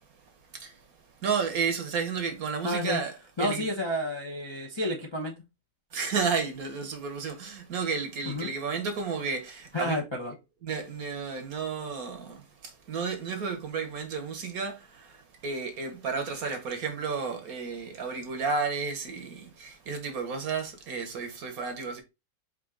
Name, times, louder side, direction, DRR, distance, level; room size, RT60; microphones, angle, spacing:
voice 1, 1.2-3.1 3.4-3.6 5.9-10.0 10.6-22.0, right 5 dB, 60° right, 1.2 m, -32 dB
voice 2, 2.6-3.0 3.4-5.3 8.3-8.5 9.7-10.3, left 1 dB, 30° left, 0.5 m, -30 dB
5.1 x 2.8 x 3.7 m
omnidirectional pair, 2.0 m